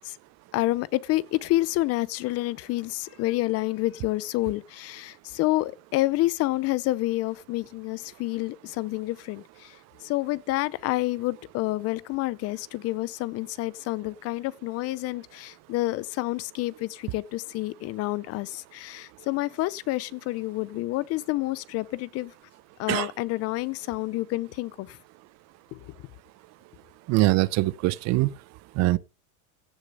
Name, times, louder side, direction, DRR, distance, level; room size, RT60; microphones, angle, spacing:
voice 1, 0.5-9.7 10.0-22.3 22.8-25.0 25.7-25.8, left 18 dB, 40° left, 0.6 m, -28 dB
voice 2, 27.1-28.3 28.8-29.0, right 19 dB, 45° right, 0.6 m, -22 dB
16.5 x 6.5 x 5.3 m
supercardioid pair, 135°, 39 cm